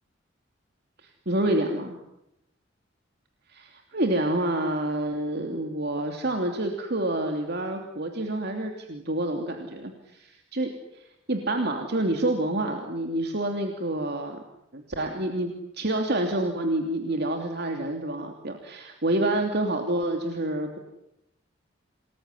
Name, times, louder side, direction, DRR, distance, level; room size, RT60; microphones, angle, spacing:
voice 1, 1.0-2.0 3.5-14.4 14.7-20.8, right 1 dB, 60° right, 4 dB, 3.0 m, -28 dB
28.5 x 21.0 x 9.8 m, 0.84 s
head